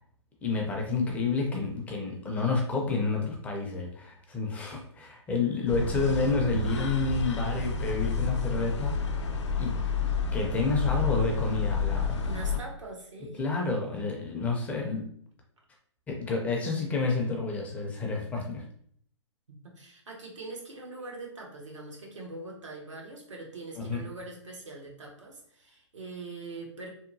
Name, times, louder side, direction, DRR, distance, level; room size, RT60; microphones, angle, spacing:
voice 1, 0.4-9.2 9.6-9.8 10.3-12.2 13.4-15.1 16.1-18.6 23.8-24.0, left 4 dB, 10° left, 0 dB, 0.4 m, -29 dB
sound 1, 5.7-12.6, left 4 dB, 70° left, 0.5 m, -30 dB
voice 2, 12.2-13.4 19.5-26.9, right 2 dB, 85° right, -1 dB, 0.9 m, -42 dB
2.9 x 2.1 x 2.6 m, 0.64 s
hypercardioid pair, 135°, 15 cm